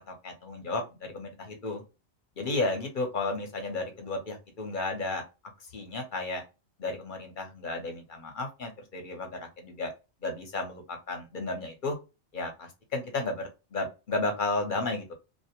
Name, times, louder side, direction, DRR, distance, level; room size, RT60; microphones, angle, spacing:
voice 1, 0.1-1.8 2.4-5.2 5.7-6.4 6.8-9.3 9.6-9.9 10.2-12.0 12.3-15.1, left 2 dB, 50° left, 4 dB, 0.8 m, -33 dB
2.4 x 2.0 x 2.8 m, 0.28 s
omnidirectional pair, 1.2 m